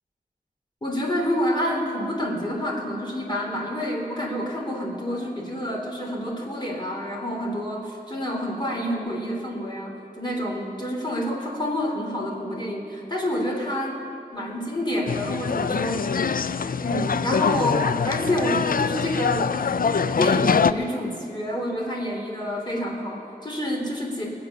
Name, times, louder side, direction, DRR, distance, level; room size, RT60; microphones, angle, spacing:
voice 1, 0.8-14.0 14.3-16.1 16.8-19.6 20.2-24.3, equal, 30° left, -2 dB, 3.1 m, -28 dB
sound 1, 15.1-20.7, left 5 dB, 65° left, 0.4 m, -24 dB
20.5 x 8.1 x 6.8 m, 2.7 s
wide cardioid pair, 55°, 16 cm